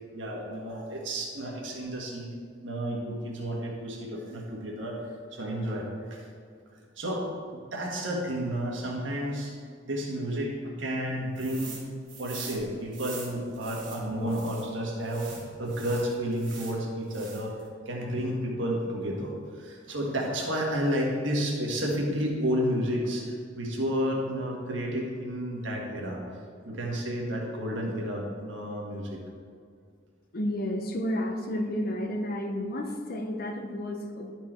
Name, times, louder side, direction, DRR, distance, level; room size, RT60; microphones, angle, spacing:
voice 1, 0.1-2.3 2.6-5.0 5.3-6.3 7.0-7.3 7.5-9.5 9.9-11.8 12.2-17.5 17.8-26.2 26.6-29.2, equal, 70° right, -1 dB, 1.5 m, -31 dB
sound 1, 11.4-11.8 12.1-14.7 15.0-16.8 17.1-17.6, right 5 dB, 90° right, 2.0 m, -44 dB
voice 2, 30.3-34.3, equal, 50° left, 5 dB, 0.8 m, -31 dB
11.0 x 4.6 x 4.4 m, 2.2 s
head